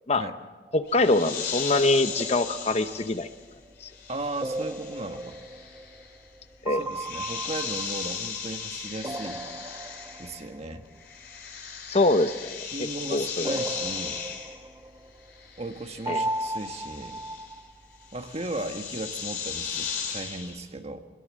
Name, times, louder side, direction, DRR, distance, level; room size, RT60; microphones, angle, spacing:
voice 1, 0.7-3.3 3.8-3.9 6.6-6.8 11.9-13.6 16.1-16.2, left 2 dB, 35° left, 10 dB, 0.9 m, -24 dB
sound 1, 0.7-1.2 1.7-3.8 4.4-6.4 6.7-8.6 9.0-10.8 13.4-15.3 16.1-18.0, right 1 dB, 20° right, 0.7 m, -36 dB
sound 2, 0.9-10.6 10.8-20.6, left 6 dB, 60° left, 4.9 m, -37 dB
voice 2, 4.1-5.4 6.8-9.4 10.2-10.8 12.6-14.3 15.6-17.2 18.1-21.0, right 2 dB, 35° right, 6 dB, 1.6 m, -36 dB
23.0 x 21.5 x 7.6 m, 1.3 s
head